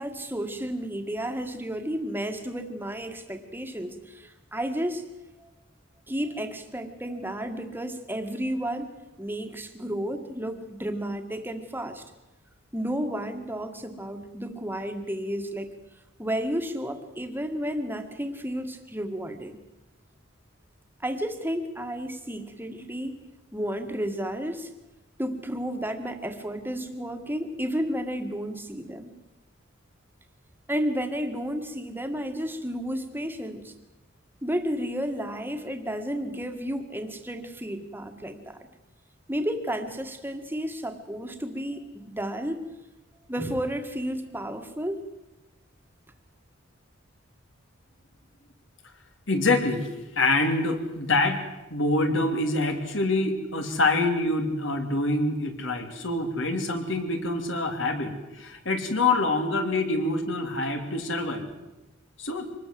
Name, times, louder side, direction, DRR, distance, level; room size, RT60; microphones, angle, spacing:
voice 1, 0.0-5.0 5.4-5.5 6.1-12.0 12.7-15.7 16.2-19.6 21.0-23.2 23.5-24.7 25.2-29.1 30.7-33.7 34.4-38.7 39.3-42.6 43.3-45.0, equal, 10° right, 6 dB, 1.9 m, -32 dB
voice 2, 49.3-49.9 50.1-51.4 51.7-61.5 62.2-62.5, left 2 dB, 65° left, 5 dB, 3.2 m, -26 dB
25.0 x 20.0 x 7.8 m, 1.0 s
head